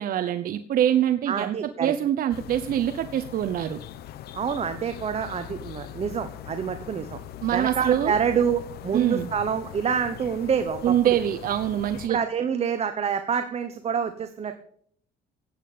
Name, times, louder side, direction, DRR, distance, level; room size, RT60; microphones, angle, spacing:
voice 1, 0.0-3.8 7.4-8.2 8.9-9.3 10.8-12.2, right 11 dB, 60° right, 9 dB, 0.8 m, -24 dB
voice 2, 1.3-1.9 4.3-7.2 7.5-11.2 12.1-14.6, right 7 dB, 40° right, 9 dB, 1.1 m, -27 dB
sound 1, 2.3-12.1, left 12 dB, 70° left, 0.9 m, -41 dB
15.5 x 8.6 x 5.1 m, 0.62 s
cardioid pair, 110°, 17 cm